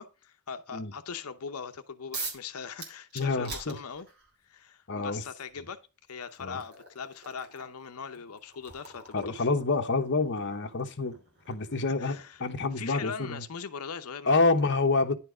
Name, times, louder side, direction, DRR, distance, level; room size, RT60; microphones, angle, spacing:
voice 1, 0.0-4.1 4.4-5.8 6.1-9.5 12.0-12.4 12.8-14.4, left 6 dB, 75° left, 0.7 m, -40 dB
sound 1, 2.1-2.5 2.8-4.3 5.5-5.6 6.1-12.7, right 3 dB, 50° right, 2.7 m, -44 dB
voice 2, 3.1-3.8 4.9-5.2 6.4-6.6 9.1-11.2 11.5-13.4 14.2-15.1, left 3 dB, 55° left, 1.1 m, -27 dB
10.5 x 4.5 x 4.9 m
head